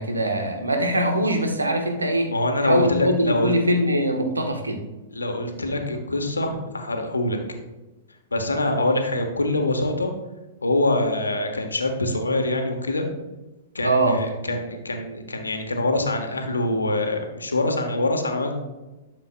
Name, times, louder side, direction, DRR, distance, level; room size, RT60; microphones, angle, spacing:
voice 1, 0.0-2.3 2.6-4.8 13.8-14.2, right 1 dB, 80° right, 4 dB, 1.1 m, -22 dB
voice 2, 2.3-3.5 5.1-7.4 8.3-10.1 10.6-13.1 13.7-18.5, left 2 dB, 80° left, 4 dB, 1.2 m, -24 dB
11.5 x 6.6 x 2.2 m, 1.1 s
figure-of-eight pair, 105°, 0 cm